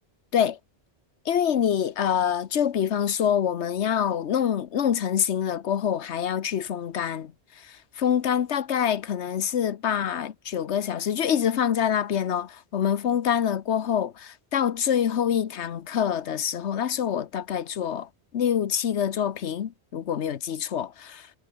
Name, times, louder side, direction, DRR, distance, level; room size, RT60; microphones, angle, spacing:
voice 1, 1.2-18.1 18.3-21.2, left 9 dB, 85° left, 1.2 m, -26 dB
omnidirectional pair, 1.1 m